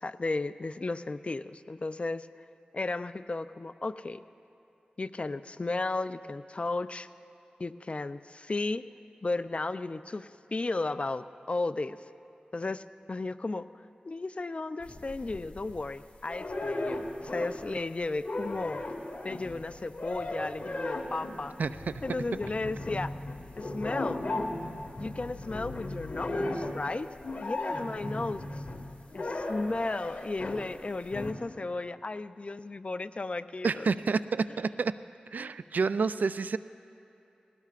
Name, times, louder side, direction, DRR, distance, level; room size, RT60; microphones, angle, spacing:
voice 1, 0.0-2.3 2.7-4.2 5.0-7.1 7.6-8.9 9.2-12.0 12.5-13.7 14.0-18.8 19.2-21.5 22.0-23.1 23.6-24.2 25.0-27.1 27.4-28.6 29.1-33.9, left 3 dB, 45° left, 13 dB, 0.4 m, -34 dB
sound 1, 14.8-15.9 16.3-17.8 18.0-30.7 31.1-31.3, left 2 dB, 60° left, 1.5 m, -36 dB
voice 2, 33.6-35.0 35.3-36.6, right 4 dB, 75° right, 14 dB, 0.3 m, -29 dB
20.0 x 17.5 x 2.5 m, 2.9 s
cardioid pair, 45°, 3 cm